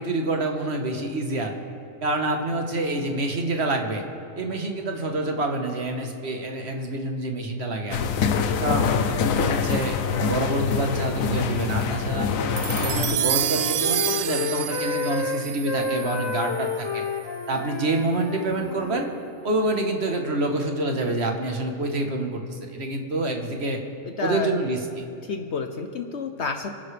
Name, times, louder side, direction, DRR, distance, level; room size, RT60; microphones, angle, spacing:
voice 1, 0.0-1.5 2.0-4.0 4.4-8.0 8.6-12.3 12.8-17.0 17.5-19.1 19.4-23.8 24.2-24.8, right 2 dB, 55° right, 3 dB, 1.5 m, -27 dB
sound 1, 7.9-13.2, left 6 dB, 85° left, 1.2 m, -25 dB
Wind instrument woodwind instrument, 12.2-19.1, left 4 dB, 25° left, 0.6 m, -31 dB
sound 2, 12.6-17.1, right 12 dB, 75° right, 0.9 m, -29 dB
voice 2, 24.0-24.6 25.2-26.7, left 5 dB, 60° left, 5 dB, 1.0 m, -30 dB
29.5 x 9.9 x 3.4 m, 2.7 s
omnidirectional pair, 1.4 m